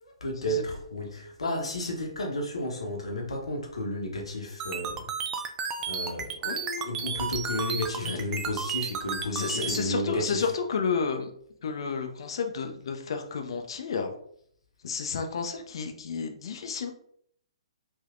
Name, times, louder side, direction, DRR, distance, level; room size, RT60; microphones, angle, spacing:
voice 1, 0.0-5.0 5.9-6.4 6.8-10.4, left 1 dB, 70° left, 1 dB, 0.9 m, -32 dB
sound 1, 4.6-9.8, right 6 dB, 20° right, 0.3 m, -32 dB
voice 2, 6.4-6.9 8.0-8.2 9.3-11.3 11.6-14.1 14.8-16.9, left 5 dB, 55° left, 5 dB, 0.5 m, -31 dB
3.5 x 2.6 x 2.4 m, 0.65 s
figure-of-eight pair, 125°, 3 cm